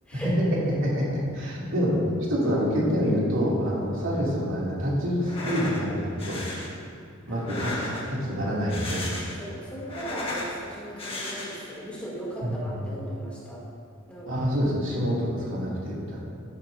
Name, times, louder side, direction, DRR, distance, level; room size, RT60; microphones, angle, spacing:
voice 1, 0.8-2.0 2.3-6.5 7.2-9.1 12.4-12.8 14.3-16.2, equal, 70° right, -5 dB, 2.5 m, -27 dB
sound 1, 5.2-5.8 6.2-6.7 7.3-8.2 8.6-9.5 9.8-10.5 11.0-11.7, left 1 dB, 25° left, 1.5 m, -34 dB
voice 2, 9.4-13.6 14.1-14.5, right 1 dB, 5° left, -7 dB, 2.4 m, -38 dB
12.5 x 9.0 x 2.6 m, 2.4 s
head